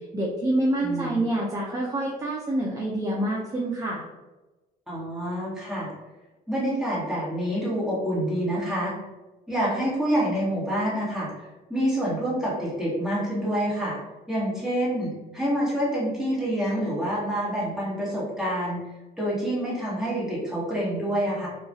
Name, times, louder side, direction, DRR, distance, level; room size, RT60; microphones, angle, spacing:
voice 1, 0.1-4.0, right 1 dB, 20° right, -3 dB, 0.5 m, -27 dB
voice 2, 0.8-1.2 4.9-5.9 6.5-8.9 9.5-14.0 14.3-18.8 19.2-21.5, equal, 5° right, -8 dB, 1.4 m, -27 dB
2.9 x 2.3 x 2.6 m, 1.1 s
cardioid pair, 110°, 17 cm